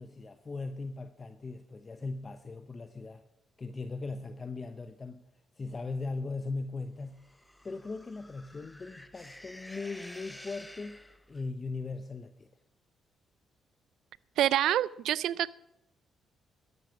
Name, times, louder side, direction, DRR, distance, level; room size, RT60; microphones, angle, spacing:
voice 1, 0.0-3.2 3.6-5.2 5.6-7.2 7.6-11.0 11.3-12.5, left 3 dB, 35° left, 9 dB, 0.9 m, -39 dB
sound 1, 7.2-11.5, left 1 dB, 10° left, 1.2 m, -51 dB
voice 2, 14.4-15.5, right 12 dB, 75° right, 21 dB, 0.4 m, -27 dB
13.0 x 11.0 x 6.0 m, 0.84 s
supercardioid pair, 55°, 0 cm